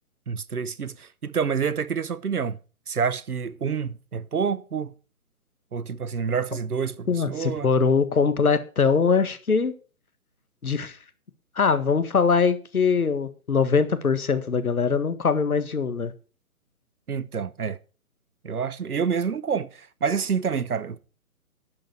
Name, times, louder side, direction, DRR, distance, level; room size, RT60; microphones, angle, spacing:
voice 1, 0.3-2.6 2.9-4.9 5.7-7.7 17.1-17.8 18.4-21.0, right 6 dB, 80° right, 0.9 m, -28 dB
voice 2, 7.1-9.7 10.6-11.0 11.5-16.1, left 5 dB, 75° left, 1.7 m, -22 dB
11.5 x 7.9 x 4.4 m
figure-of-eight pair, 135°, 44 cm